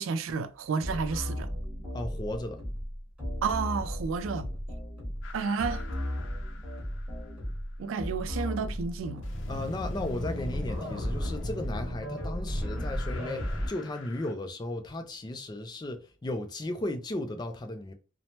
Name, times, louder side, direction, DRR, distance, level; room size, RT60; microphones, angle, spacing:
voice 1, 0.0-1.5 3.4-4.5 5.3-5.8 7.8-9.3, right 5 dB, 85° right, 0.3 m, -31 dB
sound 1, 0.8-13.7, equal, 5° right, 1.1 m, -35 dB
voice 2, 1.9-2.6 9.5-17.9, left 1 dB, 20° left, 0.3 m, -35 dB
sound 2, 5.2-7.5 9.2-14.3, left 2 dB, 70° left, 0.5 m, -42 dB
3.0 x 2.0 x 2.8 m
head